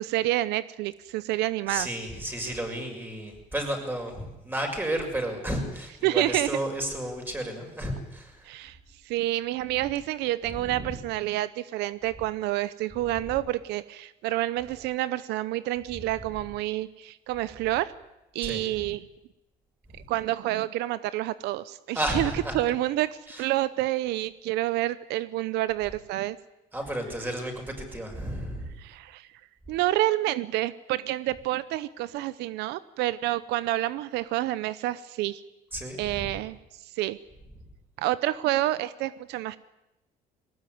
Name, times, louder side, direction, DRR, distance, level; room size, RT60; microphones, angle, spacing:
voice 1, 0.0-1.9 6.0-6.5 8.4-8.8 9.1-17.9 18.3-19.0 20.1-26.4 28.8-29.3 29.7-35.4 36.0-36.6 36.9-37.2 38.0-39.6, right 15 dB, 90° right, 16 dB, 0.7 m, -28 dB
voice 2, 1.7-8.6 10.4-11.0 13.0-13.3 15.9-16.1 18.4-18.8 19.9-20.0 21.9-22.6 23.3-23.5 26.7-28.8 35.7-36.4, right 1 dB, 10° right, 3 dB, 6.3 m, -33 dB
20.5 x 18.5 x 9.4 m, 0.95 s
cardioid pair, 110°, 17 cm